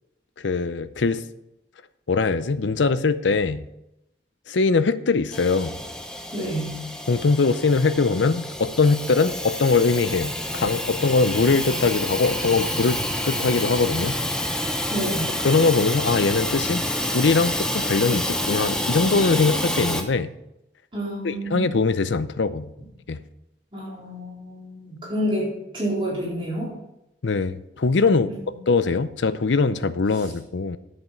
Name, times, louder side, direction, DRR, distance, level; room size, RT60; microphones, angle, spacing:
voice 1, 0.4-1.2 2.1-3.6 4.5-5.7 7.1-14.2 15.4-20.3 21.2-22.7 23.1-23.2 27.2-28.3 28.7-30.8, left 4 dB, 80° left, 13 dB, 0.6 m, -22 dB
Hiss / Toilet flush / Trickle dribble, 5.3-20.0, left 1 dB, 5° left, 0.8 m, -28 dB
voice 2, 6.3-6.8 14.9-15.3 20.9-21.7 23.7-26.7, equal, 30° right, -6 dB, 4.1 m, -28 dB
11.0 x 7.6 x 5.0 m, 0.87 s
head